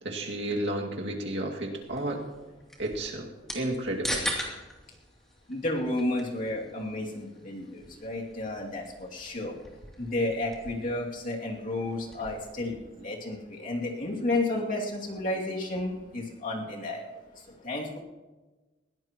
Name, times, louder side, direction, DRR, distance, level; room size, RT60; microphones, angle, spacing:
voice 1, 0.0-2.3 2.8-3.3 3.5-4.3, right 1 dB, 75° right, 0 dB, 2.2 m, -32 dB
sound 1, 1.8-12.5, equal, ahead, 2.8 m, -41 dB
voice 2, 5.5-9.6 10.0-17.1 17.6-18.0, left 2 dB, 50° left, -1 dB, 2.5 m, -32 dB
21.0 x 17.0 x 3.0 m, 1.2 s
head